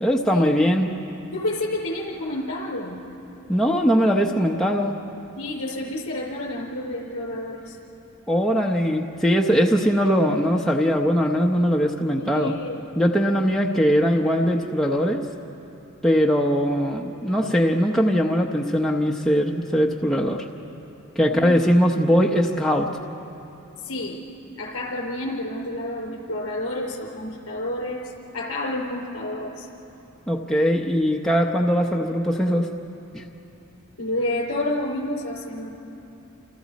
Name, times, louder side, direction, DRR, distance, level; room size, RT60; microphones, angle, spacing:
voice 1, 0.0-0.9 3.5-5.0 8.3-12.5 13.0-15.2 16.0-20.4 21.1-22.9 30.3-32.7 33.1-33.2, equal, ahead, -1 dB, 0.8 m, -21 dB
voice 2, 1.3-3.1 5.4-7.8 12.1-12.8 21.3-21.6 23.8-24.2 24.6-29.7 34.0-35.7, left 1 dB, 65° left, -2 dB, 5.1 m, -30 dB
29.0 x 27.5 x 4.2 m, 3.0 s
head